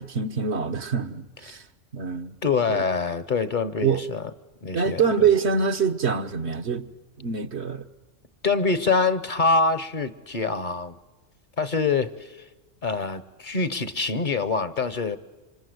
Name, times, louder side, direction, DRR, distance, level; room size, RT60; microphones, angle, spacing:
voice 1, 0.0-1.6 1.9-2.3 2.7-2.9 3.8-4.0 4.7-6.9 7.2-7.9, right 6 dB, 65° right, 1.4 m, -25 dB
voice 2, 2.4-4.3 4.6-5.0 8.4-11.0 11.6-12.4 12.8-15.2, left 4 dB, 45° left, 1.1 m, -25 dB
27.5 x 25.5 x 8.0 m
omnidirectional pair, 1.2 m